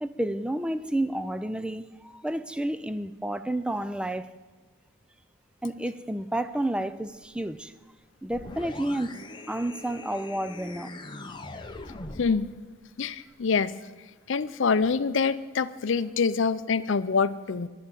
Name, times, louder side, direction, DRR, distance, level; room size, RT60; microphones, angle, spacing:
voice 1, 0.0-4.3 5.6-7.7 8.2-11.0, right 1 dB, 5° right, 0.4 m, -30 dB
sound 1, 8.3-12.5, left 2 dB, 20° left, 0.7 m, -41 dB
voice 2, 12.2-12.5 13.0-13.7 14.3-17.7, left 5 dB, 60° left, 0.5 m, -25 dB
11.5 x 7.3 x 9.6 m
head